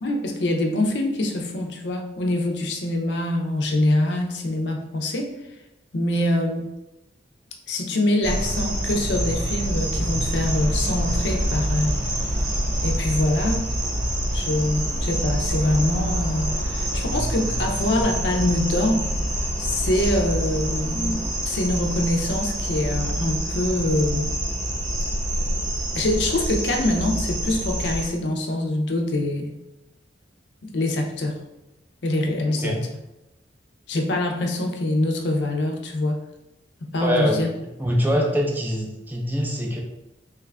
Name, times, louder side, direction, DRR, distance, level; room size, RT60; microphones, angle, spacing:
voice 1, 0.0-5.3 5.9-6.7 7.7-12.0 12.8-13.7 14.3-19.1 19.6-24.4 25.9-29.5 30.6-31.4 32.0-32.9 33.9-36.2 36.8-37.5 38.1-38.2, left 1 dB, 70° left, 2 dB, 0.5 m, -24 dB
sound 1, 8.2-28.1, right 1 dB, 45° right, 0.8 m, -26 dB
voice 2, 32.5-32.8 37.0-37.5 37.8-39.8, equal, 10° right, 0 dB, 0.3 m, -24 dB
3.0 x 2.4 x 3.2 m, 0.93 s
head